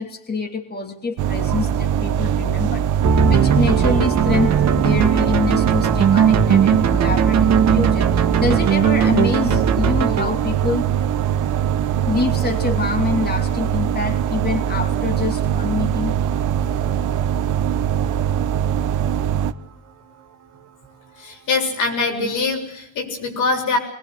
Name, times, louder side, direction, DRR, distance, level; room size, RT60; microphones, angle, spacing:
voice 1, 0.0-10.9 12.1-16.2, left 4 dB, 30° left, 4 dB, 2.8 m, -26 dB
sound 1, 1.2-19.5, right 9 dB, 85° right, 1.3 m, -22 dB
sound 2, 3.0-15.7, right 7 dB, 60° right, 2.2 m, -20 dB
voice 2, 21.2-23.8, left 3 dB, 85° left, 3 dB, 7.5 m, -23 dB
22.5 x 20.5 x 7.9 m, 0.71 s
cardioid pair, 90°, 30 cm